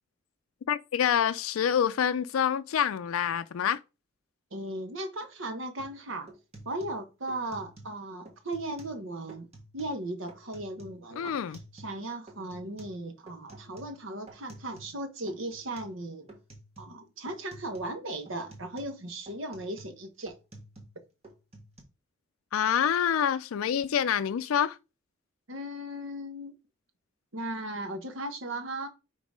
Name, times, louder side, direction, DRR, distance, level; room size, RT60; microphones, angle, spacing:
voice 1, 0.7-3.8 11.2-11.6 22.5-24.8, left 8 dB, 85° left, 0.4 m, -27 dB
voice 2, 4.5-6.3 6.6-9.5 9.7-11.4 11.7-16.3 16.8-20.3 25.5-26.5 27.3-28.9, right 1 dB, 70° right, 1.2 m, -37 dB
sound 1, 5.8-6.0 6.3-8.0 8.3-9.0 9.3-10.0 10.3-12.0 12.3-15.0 15.3-16.0 16.3-17.0 17.3-18.0 18.3-21.0 21.2-21.8, right 1 dB, 30° right, 1.4 m, -51 dB
5.3 x 4.0 x 5.0 m
head